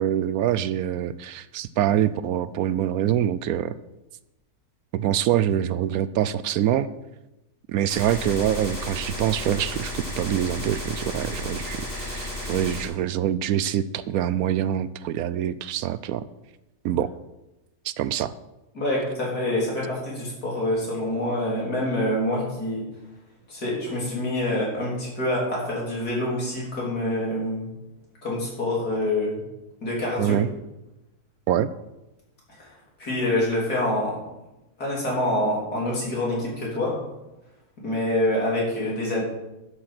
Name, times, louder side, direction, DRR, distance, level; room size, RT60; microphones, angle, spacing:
voice 1, 0.0-3.8 4.9-6.9 7.7-16.2 16.8-17.1 17.8-18.3 30.2-30.5 31.5-31.7, right 10 dB, 75° right, 15 dB, 1.0 m, -25 dB
Gunshot gunfire, 7.9-12.9, left 1 dB, 35° left, 3.6 m, -33 dB
voice 2, 18.7-22.8 23.5-27.7 28.2-29.4 29.8-30.4 32.6-32.7 33.0-34.2 34.8-37.0 37.8-39.2, left 1 dB, 80° left, -4 dB, 4.2 m, -26 dB
11.5 x 7.8 x 5.8 m, 0.97 s
omnidirectional pair, 1.6 m